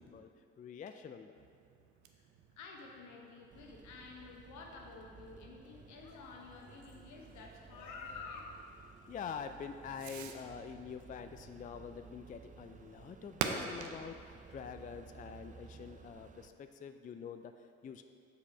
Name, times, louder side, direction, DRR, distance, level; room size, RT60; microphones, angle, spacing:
voice 1, 0.6-1.3 9.1-18.0, left 6 dB, 30° left, 8 dB, 0.3 m, -46 dB
Fireworks, 1.3-15.9, right 6 dB, 80° right, 0.6 m, -48 dB
voice 2, 2.6-8.4, left 4 dB, 75° left, 0 dB, 1.0 m, -50 dB
sound 1, 3.5-16.5, right 5 dB, 25° right, 0.5 m, -56 dB
6.8 x 4.8 x 4.5 m, 2.4 s
supercardioid pair, 50°, 29 cm